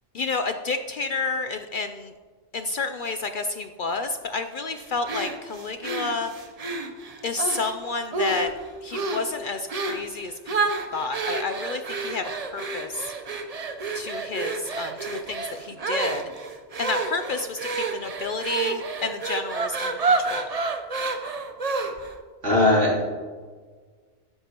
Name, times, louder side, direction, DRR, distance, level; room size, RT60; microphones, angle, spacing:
voice 1, 0.1-2.1 2.5-6.3 7.2-8.5 8.8-10.3 10.9-13.1 13.9-16.2 16.8-20.5, left 3 dB, 60° left, 8 dB, 0.5 m, -30 dB
sound 1, 5.1-7.7 8.1-8.6 8.9-9.3 9.7-10.1 10.5-22.1, right 3 dB, 35° right, 0.7 m, -29 dB
voice 2, 22.4-23.0, left 1 dB, 70° right, -4 dB, 3.2 m, -19 dB
12.5 x 10.5 x 2.9 m, 1.5 s
omnidirectional pair, 1.3 m